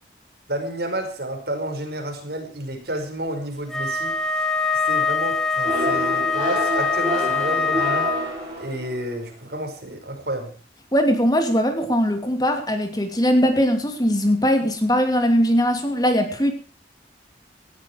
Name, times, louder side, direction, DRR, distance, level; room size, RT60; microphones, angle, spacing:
voice 1, 0.5-4.2 4.9-8.1 8.6-10.5, right 1 dB, 60° right, 4 dB, 5.6 m, -30 dB
Wind instrument woodwind instrument, 3.7-8.4, left 4 dB, 5° left, 2.5 m, -23 dB
sound 1, 5.6-9.2, equal, 25° right, 7.1 m, -28 dB
voice 2, 10.9-16.5, equal, 20° left, 6 dB, 2.7 m, -20 dB
18.5 x 13.0 x 4.7 m, 0.40 s
head